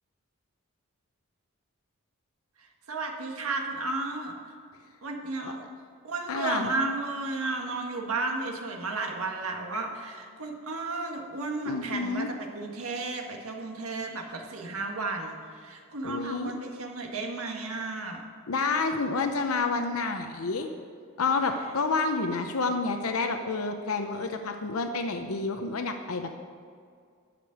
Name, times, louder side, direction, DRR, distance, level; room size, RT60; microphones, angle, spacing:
voice 1, 2.9-4.3 5.0-5.6 6.0-12.3 12.5-15.4 15.6-18.2, right 3 dB, 90° right, 2 dB, 1.7 m, -33 dB
voice 2, 6.3-6.7 11.6-12.3 16.0-16.5 18.5-20.7 21.2-26.4, left 4 dB, 90° left, 6 dB, 0.7 m, -29 dB
12.5 x 5.2 x 8.7 m, 2.2 s
head